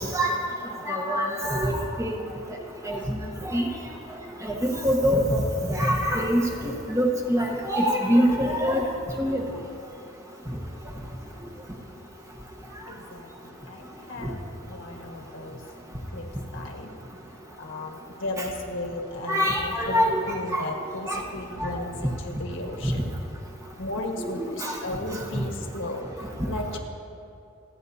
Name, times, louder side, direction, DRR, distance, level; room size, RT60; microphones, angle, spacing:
voice 1, 0.9-2.1 2.9-3.2 3.5-3.7 4.4-5.4 5.7-8.8 9.2-9.4 19.3-20.2 20.5-20.7 21.1-21.2 21.6-21.7 24.4-24.7, equal, 15° right, 0 dB, 1.0 m, -24 dB
voice 2, 12.9-15.6 16.1-16.3 16.5-16.9 17.6-23.1 23.8-26.1 26.5-26.8, left 1 dB, 60° left, 1 dB, 1.5 m, -35 dB
28.5 x 9.6 x 2.8 m, 2.7 s
head